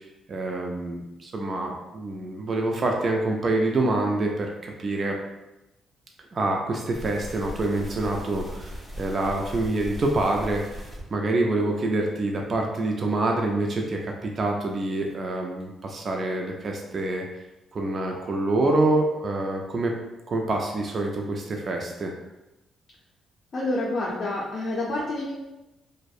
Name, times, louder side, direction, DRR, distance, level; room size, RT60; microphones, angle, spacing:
voice 1, 0.3-5.2 6.3-10.8 11.1-17.3 17.7-20.0 20.3-22.1, right 2 dB, 45° right, 1 dB, 0.3 m, -26 dB
sound 1, 6.9-11.1 11.6-11.7 12.1-12.2 12.6-12.7 13.1-13.2 13.6-13.7 14.1-14.2 14.6-14.7 15.1-15.2 15.6-15.7 16.1-16.2 16.6-16.7 17.1-17.2, equal, 15° left, 0.8 m, -38 dB
voice 2, 23.5-25.3, left 2 dB, 45° left, -5 dB, 0.5 m, -28 dB
2.5 x 2.0 x 2.3 m, 0.98 s
cardioid pair, 90°, 0 cm